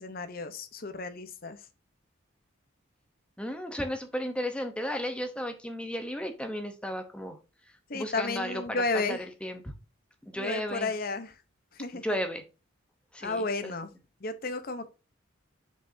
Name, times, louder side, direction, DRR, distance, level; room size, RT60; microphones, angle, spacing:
voice 1, 0.0-1.6 7.9-9.3 10.4-11.4 11.7-12.0 13.2-13.9 14.2-14.9, left 3 dB, 45° left, 0.8 m, -32 dB
voice 2, 3.4-7.4 7.9-9.7 10.2-10.9 11.9-12.4 13.1-13.7, equal, 5° left, 0.8 m, -34 dB
6.5 x 5.4 x 2.7 m
head